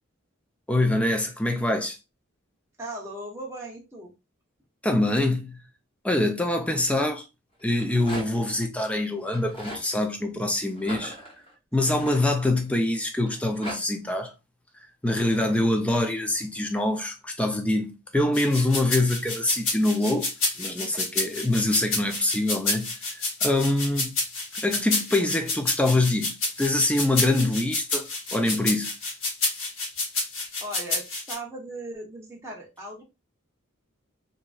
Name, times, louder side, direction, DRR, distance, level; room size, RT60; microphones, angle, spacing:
voice 1, 0.7-2.0 4.8-5.6 6.0-7.2 7.6-11.1 11.7-14.3 15.0-20.3 20.6-22.9 23.4-24.2 24.6-28.9, left 1 dB, 5° left, 0.4 m, -24 dB
voice 2, 2.8-4.1 10.8-11.1 15.2-15.7 30.6-33.0, right 1 dB, 15° right, 0.8 m, -38 dB
Rattle, 7.6-8.5 9.2-9.8 10.8-12.7 13.3-13.8, equal, 25° left, 1.2 m, -39 dB
sound 1, 18.3-31.3, left 3 dB, 75° left, 1.1 m, -29 dB
2.9 x 2.6 x 2.3 m
head